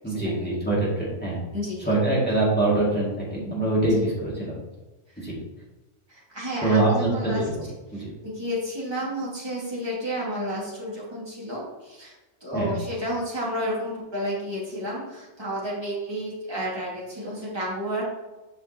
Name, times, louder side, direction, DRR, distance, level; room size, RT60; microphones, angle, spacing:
voice 1, 0.0-1.4 1.8-4.5 5.2-5.4 6.6-7.3 7.9-8.1 12.5-12.7, right 2 dB, 10° left, -7 dB, 2.2 m, -24 dB
voice 2, 1.5-1.9 5.2-5.3 6.1-7.4 7.9-12.1 12.4-18.0, equal, 20° right, -6 dB, 2.1 m, -31 dB
7.8 x 5.5 x 2.9 m, 1.1 s
omnidirectional pair, 1.2 m